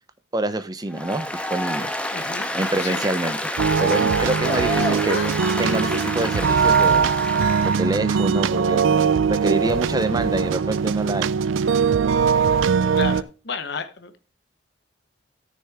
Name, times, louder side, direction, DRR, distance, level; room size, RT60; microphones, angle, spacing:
voice 1, 0.3-1.9 2.5-5.2 5.6-7.1 7.6-8.8 9.3-11.3, right 2 dB, 20° right, 0.7 m, -26 dB
Applause, 0.9-7.9, left 1 dB, 5° left, 1.5 m, -29 dB
voice 2, 2.1-2.5 2.8-3.1 13.0-14.3, left 5 dB, 60° left, 1.0 m, -32 dB
Yell / Crying sobbing, 3.3-3.8 4.4-5.3 5.6-7.0 7.5-9.1 9.8-10.0, left 2 dB, 35° left, 2.0 m, -38 dB
sound 1, 3.6-13.2, right 6 dB, 80° right, 0.4 m, -21 dB
13.5 x 6.5 x 3.4 m
head